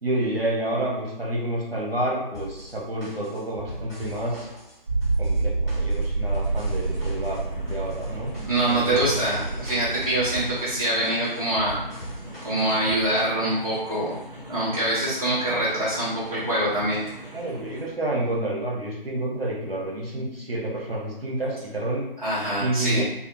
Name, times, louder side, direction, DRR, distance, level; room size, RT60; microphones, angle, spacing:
voice 1, 0.0-4.5 5.2-8.3 8.6-9.2 10.5-10.6 17.3-22.0 22.6-23.0, right 1 dB, 85° right, -3 dB, 1.0 m, -29 dB
sound 1, 2.3-13.0, right 1 dB, 20° left, 0.7 m, -40 dB
sound 2, 4.9-10.4, right 3 dB, 65° right, 1.3 m, -28 dB
sound 3, 6.2-17.8, left 1 dB, 20° right, 0.7 m, -41 dB
voice 2, 8.4-11.8 12.4-14.1 14.5-17.0 22.2-23.0, right 1 dB, 40° right, -9 dB, 1.2 m, -24 dB
2.6 x 2.0 x 2.6 m, 0.84 s
figure-of-eight pair, 155°, 29 cm